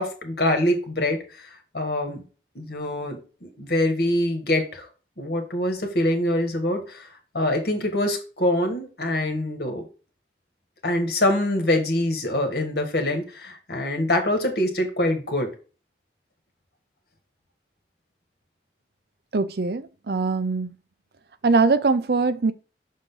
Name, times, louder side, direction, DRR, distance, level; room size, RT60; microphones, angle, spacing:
voice 1, 0.0-1.5 1.7-2.2 2.6-4.9 5.2-9.8 10.8-15.5, left 1 dB, 60° left, 1.7 m, -24 dB
voice 2, 19.3-20.7 21.4-22.5, right 4 dB, 60° right, 0.5 m, -22 dB
6.5 x 4.0 x 3.7 m
head